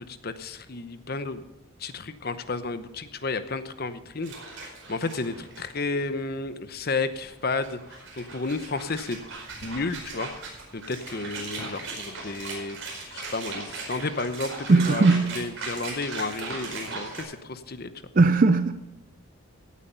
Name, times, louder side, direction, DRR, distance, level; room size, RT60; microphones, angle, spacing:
voice 1, 0.0-1.4 1.8-7.8 8.2-9.2 9.6-10.3 10.7-17.9, left 3 dB, 45° left, 0.8 m, -32 dB
sound 1, 4.2-5.6 6.0-6.1 7.1-17.2, right 3 dB, 70° right, 4.8 m, -38 dB
voice 2, 14.7-15.3 18.2-18.7, right 3 dB, 40° right, 0.4 m, -18 dB
16.5 x 8.4 x 5.6 m
head